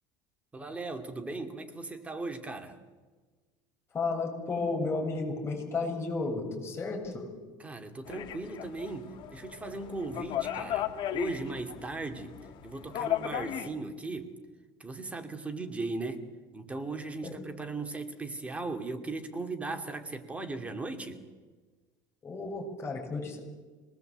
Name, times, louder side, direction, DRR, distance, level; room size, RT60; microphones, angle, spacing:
voice 1, 0.5-2.8 7.6-12.4 12.6-14.3 14.8-16.2 16.5-21.2, right 3 dB, 15° right, 5 dB, 2.6 m, -37 dB
voice 2, 3.9-7.3 17.2-17.4 22.2-23.4, left 3 dB, 25° left, 1 dB, 7.3 m, -33 dB
sound 1, 8.1-13.7, left 11 dB, 50° left, 2.1 m, -36 dB
26.0 x 20.0 x 8.2 m, 1.4 s
supercardioid pair, 125°, 10 cm